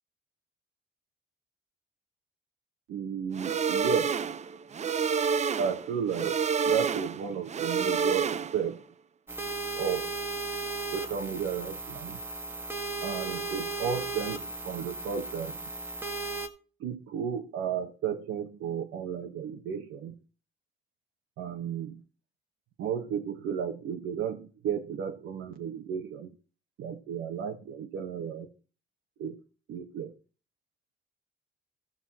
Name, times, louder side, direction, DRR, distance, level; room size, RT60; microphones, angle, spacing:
voice 1, 2.9-4.2 5.6-8.8 9.7-10.1 10.9-12.2 13.0-15.6 16.8-20.2 21.4-22.0 22.8-26.3 26.8-28.5 29.2-29.4 29.7-30.1, right 7 dB, 85° right, 3 dB, 1.3 m, -33 dB
sound 1, 3.3-8.7, right 6 dB, 35° right, 0.5 m, -29 dB
sound 2, 9.3-16.5, right 3 dB, 10° right, 1.5 m, -36 dB
14.5 x 5.9 x 4.2 m, 0.35 s
cardioid pair, 90°, 20 cm